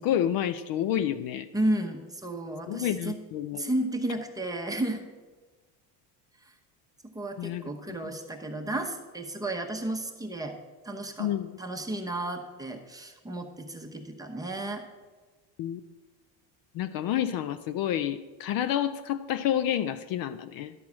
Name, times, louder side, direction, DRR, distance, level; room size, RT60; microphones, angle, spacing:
voice 1, 0.0-1.5 2.7-3.7 7.4-7.6 11.2-11.6 15.6-15.8 16.7-20.7, left 10 dB, 50° left, 11 dB, 0.5 m, -29 dB
voice 2, 1.5-3.2 3.6-5.0 7.1-10.6 10.8-11.3 11.6-14.8, right 1 dB, 10° right, 3 dB, 0.9 m, -32 dB
12.0 x 4.6 x 7.3 m, 1.3 s
cardioid pair, 135°, 44 cm